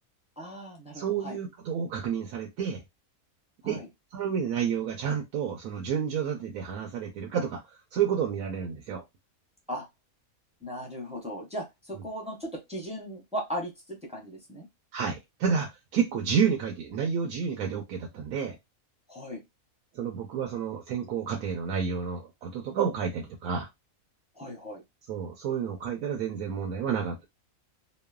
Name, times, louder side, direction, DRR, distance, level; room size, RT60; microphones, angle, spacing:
voice 1, 0.4-1.4 3.6-3.9 9.7-9.9 10.6-14.7 19.1-19.4 24.3-24.8, equal, 10° right, 0.5 m, -37 dB
voice 2, 0.9-2.8 3.6-3.8 4.1-7.6 7.9-9.0 14.9-18.6 19.9-23.7 25.1-27.3, right 7 dB, 85° right, 1.1 m, -30 dB
3.0 x 2.1 x 2.2 m
omnidirectional pair, 1.5 m